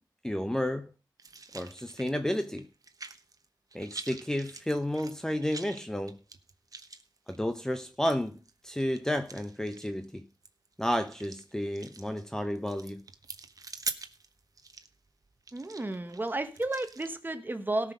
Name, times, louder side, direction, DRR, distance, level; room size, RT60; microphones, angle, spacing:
voice 1, 0.2-0.9 1.5-2.7 3.7-6.2 7.3-8.4 8.6-10.3 10.8-13.0, left 1 dB, 5° left, 0.8 m, -31 dB
sound 1, 1.2-3.5 3.7-17.1, right 3 dB, 50° right, 1.1 m, -45 dB
voice 2, 15.5-17.9, right 2 dB, 25° right, 1.5 m, -32 dB
17.5 x 6.0 x 5.1 m
wide cardioid pair, 100°, 8 cm